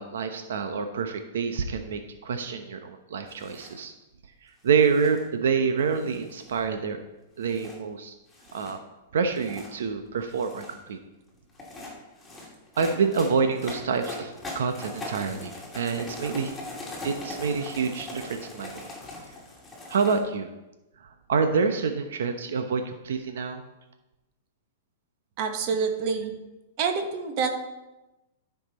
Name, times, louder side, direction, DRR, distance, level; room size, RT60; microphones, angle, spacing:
voice 1, 0.0-3.9 4.4-7.0 7.4-8.1 8.5-8.8 9.1-11.0 12.8-16.5 17.0-18.8 19.9-20.5 21.0-23.6, right 5 dB, 85° right, 7 dB, 0.9 m, -27 dB
sound 1, 3.3-3.8 4.7-5.2 5.9-6.7 7.4-7.7 8.3-8.7 9.3-9.7 10.2-10.8 11.5-20.2, left 2 dB, 5° left, 2.7 m, -41 dB
voice 2, 25.4-26.3 26.8-27.7, right 5 dB, 40° right, 5 dB, 1.4 m, -27 dB
13.5 x 5.9 x 4.2 m, 1.0 s
hypercardioid pair, 155°, 0 cm